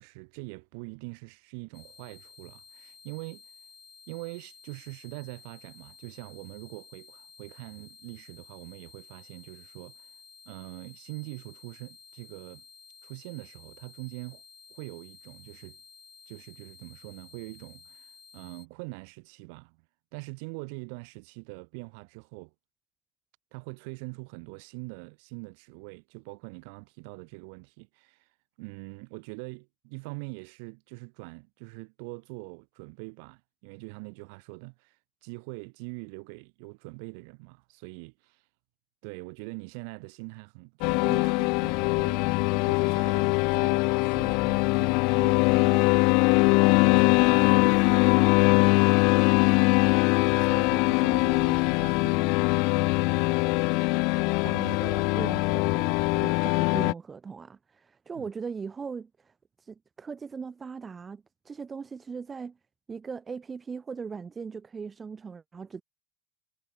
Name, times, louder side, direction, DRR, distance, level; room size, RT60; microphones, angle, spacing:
voice 1, 0.0-3.4 4.1-10.1 10.5-12.6 13.0-14.4 14.7-15.8 16.3-19.8 20.1-22.5 23.5-28.3 28.6-35.0 35.2-38.4 39.0-46.0 46.4-48.1 48.4-48.6 49.8-50.0 50.3-52.6 53.0-53.4 54.5-54.6 58.1-58.3, right 35 dB, 70° right, 7.8 m, -43 dB
sound 1, 1.7-18.7, left 5 dB, 20° left, 7.7 m, -53 dB
sound 2, 40.8-56.9, left 30 dB, 65° left, 0.5 m, -22 dB
voice 2, 54.2-62.6 62.9-65.8, right 5 dB, 20° right, 2.1 m, -39 dB
supercardioid pair, 125°, 0 cm